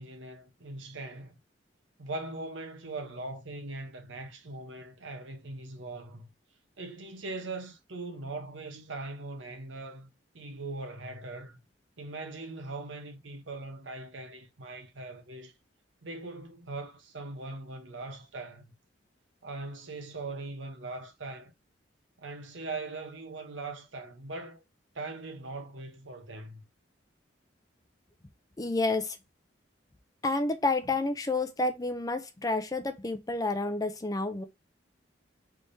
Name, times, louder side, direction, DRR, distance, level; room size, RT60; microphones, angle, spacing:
voice 1, 0.0-1.3 2.0-6.3 6.8-11.6 12.0-15.5 16.0-18.7 19.4-21.5 22.2-24.6 24.9-26.6, right 2 dB, 85° right, 0.9 m, -40 dB
voice 2, 28.6-29.2 30.2-34.4, left 2 dB, 20° left, 0.5 m, -29 dB
3.4 x 3.3 x 2.6 m
head